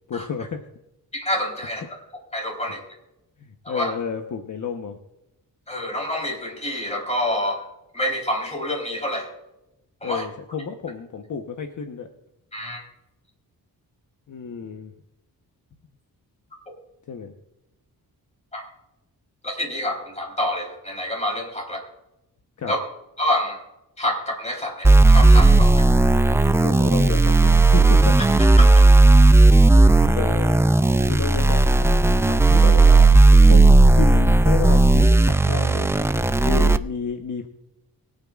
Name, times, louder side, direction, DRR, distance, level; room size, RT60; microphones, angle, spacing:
voice 1, 0.1-0.7 3.4-5.0 10.0-12.1 14.3-14.9 17.1-17.3 22.6-22.7 26.6-28.2 29.5-33.2 33.5-33.7 33.9-37.5, left 6 dB, 55° left, 4 dB, 1.1 m, -31 dB
voice 2, 1.1-1.8 2.3-2.8 3.7-3.9 5.7-7.6 7.9-9.3 10.0-10.2 12.5-12.8 18.5-18.6 19.4-21.8 22.7-22.8 23.2-23.6 24.0-25.9, left 1 dB, 20° left, 1 dB, 3.9 m, -27 dB
sound 1, 24.8-36.8, right 2 dB, 10° right, 0.3 m, -14 dB
23.5 x 9.1 x 2.4 m, 0.92 s
wide cardioid pair, 130°, 37 cm